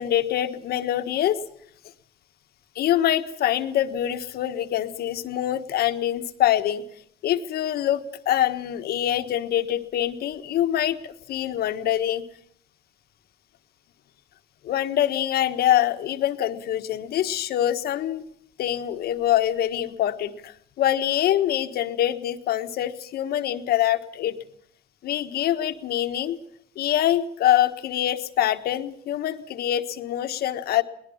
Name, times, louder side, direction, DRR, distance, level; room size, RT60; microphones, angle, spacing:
voice 1, 0.0-1.4 2.7-6.8 7.2-12.3 14.6-18.2 18.6-24.4 25.0-26.4 26.8-30.8, left 12 dB, 65° left, 9 dB, 1.5 m, -24 dB
23.0 x 19.0 x 7.2 m, 0.66 s
cardioid pair, 110°, 17 cm